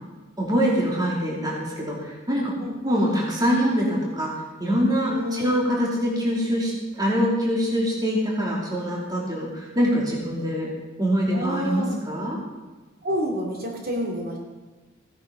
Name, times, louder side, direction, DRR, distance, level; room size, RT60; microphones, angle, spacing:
voice 1, 0.4-2.5 2.8-4.3 4.6-10.7 11.0-12.4, equal, 20° right, -4 dB, 2.6 m, -24 dB
voice 2, 5.1-5.5 11.3-11.9 13.0-14.4, equal, 50° right, -1 dB, 2.7 m, -29 dB
16.5 x 10.0 x 5.1 m, 1.2 s
head